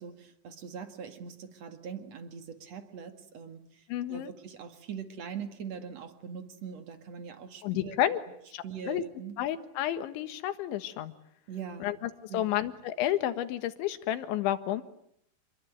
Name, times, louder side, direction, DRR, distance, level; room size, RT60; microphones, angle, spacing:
voice 1, 0.0-8.0 8.6-9.4 11.5-11.9 12.3-12.5, right 7 dB, 50° right, 8 dB, 2.3 m, -42 dB
voice 2, 3.9-4.3 7.6-8.2 8.5-9.0 9.4-11.1 11.8-14.8, left 12 dB, 75° left, 10 dB, 3.8 m, -31 dB
28.5 x 22.5 x 9.2 m, 0.74 s
omnidirectional pair, 5.6 m